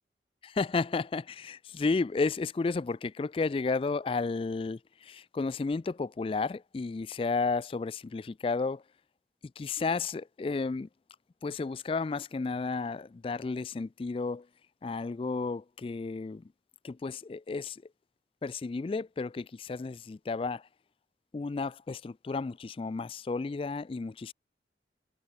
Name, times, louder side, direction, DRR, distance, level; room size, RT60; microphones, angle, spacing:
voice 1, 0.4-8.8 9.6-10.9 11.4-14.5 14.8-16.4 16.8-17.8 18.4-20.7 21.3-24.3, left 4 dB, 30° left, 0.3 m, -32 dB
head